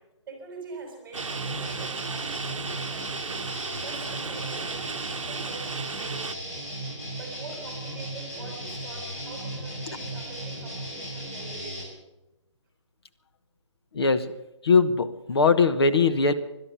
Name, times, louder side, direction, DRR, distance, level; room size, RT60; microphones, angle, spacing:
voice 1, 0.3-3.4 3.8-6.2 7.1-11.9, right 4 dB, 5° right, 0 dB, 5.2 m, -44 dB
sound 1, 1.1-6.3, right 5 dB, 85° right, 0.7 m, -35 dB
sound 2, 1.2-11.8, right 1 dB, 30° left, 5.5 m, -36 dB
voice 2, 13.9-14.4 14.6-16.3, left 4 dB, 55° left, 10 dB, 1.2 m, -21 dB
17.0 x 12.0 x 6.9 m, 0.99 s
hypercardioid pair, 170°, 16 cm